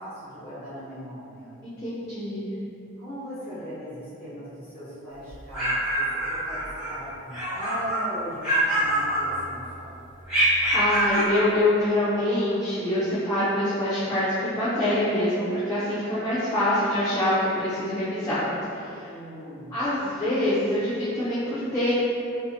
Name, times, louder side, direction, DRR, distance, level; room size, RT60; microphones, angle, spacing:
voice 1, 0.0-1.6 3.0-9.9 19.0-19.7, equal, 50° left, -12 dB, 1.1 m, -39 dB
voice 2, 1.6-2.5 10.7-18.4 18.8-19.0 19.7-21.9, left 1 dB, 15° left, -12 dB, 0.4 m, -25 dB
sound 1, 5.3-7.0 7.3-8.1 8.4-9.7 10.3-11.4, right 1 dB, 5° right, 1.0 m, -25 dB
2.7 x 2.5 x 2.3 m, 2.6 s
head